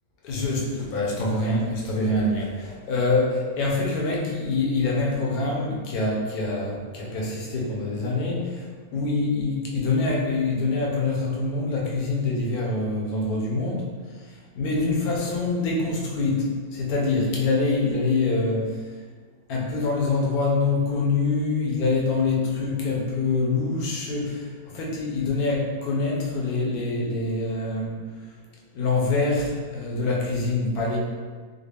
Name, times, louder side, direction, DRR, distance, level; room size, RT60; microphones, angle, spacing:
voice 1, 0.2-8.6 8.9-13.8 14.6-18.7 19.5-28.0 28.7-31.0, left 3 dB, 75° left, -3 dB, 1.2 m, -25 dB
3.9 x 2.0 x 3.2 m, 1.5 s
omnidirectional pair, 1.6 m